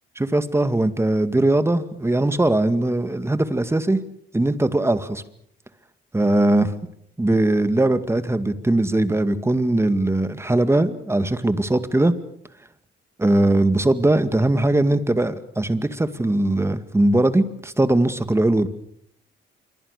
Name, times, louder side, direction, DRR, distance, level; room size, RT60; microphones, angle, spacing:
voice 1, 0.2-4.0 4.3-5.2 6.1-6.7 7.2-12.1 13.2-18.7, right 2 dB, 15° right, 11 dB, 2.1 m, -20 dB
26.5 x 23.5 x 6.7 m, 0.69 s
cardioid pair, 90°, 20 cm